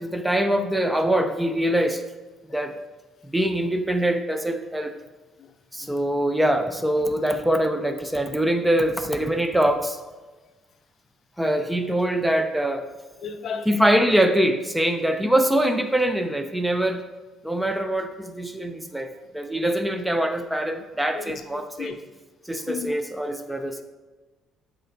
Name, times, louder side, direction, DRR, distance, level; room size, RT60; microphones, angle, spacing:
voice 1, 0.0-2.0 2.5-2.7 3.2-5.0 5.7-10.0 11.4-12.9 13.7-17.0 17.4-21.9 22.5-23.8, right 1 dB, 5° right, 7 dB, 0.5 m, -23 dB
voice 2, 5.4-6.0 13.2-14.1 15.4-15.5 18.9-19.3 21.1-22.0 22.6-22.9, left 6 dB, 55° left, 7 dB, 0.5 m, -36 dB
8.8 x 4.3 x 2.6 m, 1.2 s
cardioid pair, 90°, 0 cm